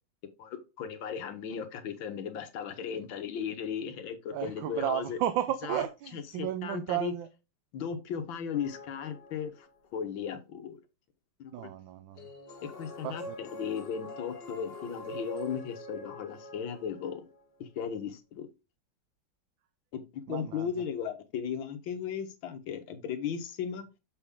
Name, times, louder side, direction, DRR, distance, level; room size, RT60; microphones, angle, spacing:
voice 1, 0.4-5.2 5.6-5.8 6.1-7.1 7.7-9.7 9.9-10.8 11.4-11.7 12.6-17.3 17.6-18.5 19.9-23.9, left 7 dB, 80° left, 1.7 m, -36 dB
voice 2, 4.3-7.3 11.5-12.3 13.0-13.4 20.3-20.7, right 11 dB, 75° right, 1.4 m, -33 dB
sound 1, 8.5-9.9 12.2-17.4, left 1 dB, 60° left, 1.7 m, -44 dB
7.0 x 5.2 x 3.6 m
omnidirectional pair, 2.1 m